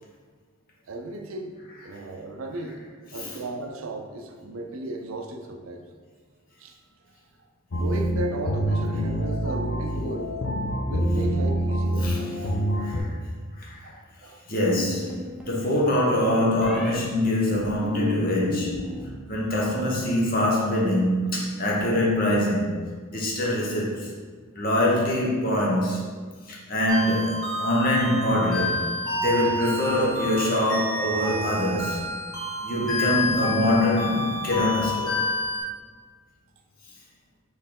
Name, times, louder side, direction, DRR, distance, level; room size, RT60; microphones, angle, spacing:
voice 1, 0.9-1.5 1.8-5.9 6.6-6.8 7.7-10.3 10.8-12.1 13.8-14.4, right 2 dB, 80° right, 4 dB, 0.5 m, -35 dB
sound 1, 7.7-13.0, equal, 65° left, 0.6 m, -26 dB
voice 2, 12.0-12.3 12.8-13.1 13.6-13.8 14.5-18.9 19.3-22.8 23.1-24.1 24.5-28.9 29.2-32.0 32.6-35.2, left 1 dB, 45° left, -3 dB, 0.9 m, -24 dB
sound 2, 14.8-15.6 16.6-16.9 17.5-19.1 19.3-19.9, left 3 dB, ahead, 0.6 m, -34 dB
sound 3, 26.9-35.6, left 2 dB, 20° left, 1.3 m, -29 dB
4.4 x 3.2 x 3.6 m, 1.5 s
head